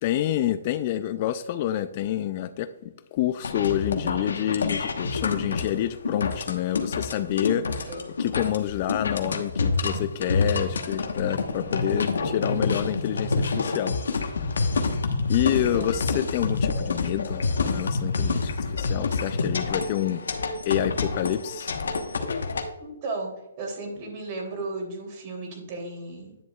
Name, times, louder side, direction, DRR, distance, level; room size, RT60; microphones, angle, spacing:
voice 1, 0.0-7.9 8.2-14.0 15.3-20.4 20.7-21.7, left 12 dB, 40° left, 0.4 m, -28 dB
sound 1, 3.4-22.6, left 4 dB, 75° left, 1.1 m, -27 dB
voice 2, 15.7-16.0 20.8-21.1 22.8-26.4, right 2 dB, 35° right, 3.0 m, -35 dB
10.5 x 7.1 x 2.4 m
hypercardioid pair, 140°, 0 cm